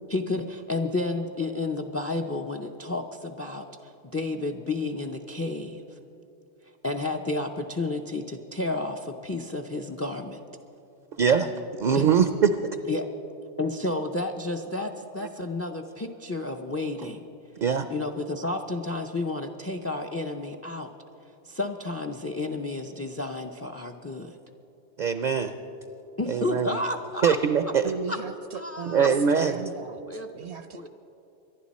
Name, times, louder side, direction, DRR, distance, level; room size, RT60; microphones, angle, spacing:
voice 1, 0.1-6.0 6.8-10.4 11.9-12.1 12.9-13.1 13.6-17.2 17.9-20.9 21.4-24.4 26.2-27.4 27.6-27.7 28.1-28.2 28.5-29.4 30.1-30.9, left 2 dB, 25° left, 6 dB, 0.3 m, -31 dB
voice 2, 11.2-11.5 11.8-12.5 17.6-17.9 25.0-25.5 26.3-26.7 27.2-27.9 28.9-29.5, right 6 dB, 55° right, 9 dB, 0.6 m, -22 dB
voice 3, 27.8-30.9, right 6 dB, 70° right, 10 dB, 0.9 m, -36 dB
24.5 x 11.0 x 4.2 m, 2.9 s
omnidirectional pair, 1.2 m